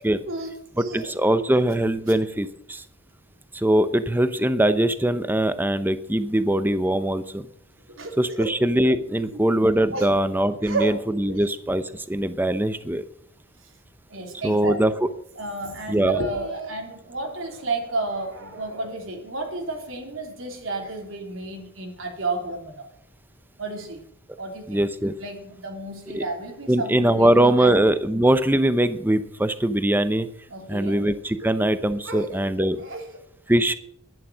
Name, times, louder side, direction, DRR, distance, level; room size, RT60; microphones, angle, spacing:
voice 1, 0.3-1.1 7.9-8.5 9.1-9.4 9.9-10.1 10.6-11.0 11.3-11.4 14.1-14.8 15.4-22.9 23.6-24.0 24.4-24.8 25.2-27.7 30.5-31.0 32.0-33.2, right 2 dB, 85° right, 3.5 m, -32 dB
voice 2, 0.9-2.8 3.5-7.4 8.2-13.0 14.4-14.9 15.9-16.2 24.7-25.1 26.1-26.2 26.7-30.3 30.7-32.8 33.5-33.7, right 1 dB, 10° right, 0.8 m, -21 dB
11.5 x 11.0 x 6.3 m
head